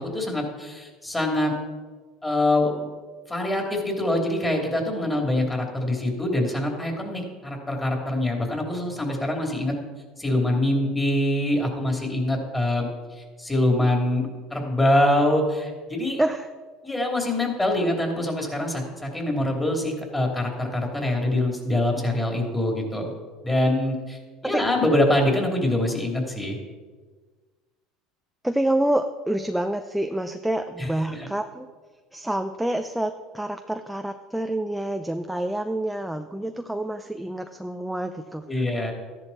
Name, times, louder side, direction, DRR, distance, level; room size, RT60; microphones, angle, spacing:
voice 1, 0.0-1.5 2.2-2.9 3.3-9.7 10.2-12.9 13.2-16.2 16.8-23.1 23.4-24.2 24.4-26.6 30.8-31.3 38.5-38.9, left 1 dB, 15° left, 1 dB, 3.1 m, -24 dB
voice 2, 16.2-16.5 24.4-24.6 28.4-31.7 32.1-38.4, right 1 dB, 5° right, 6 dB, 0.6 m, -27 dB
13.5 x 10.5 x 4.2 m, 1.4 s
supercardioid pair, 105°, 0 cm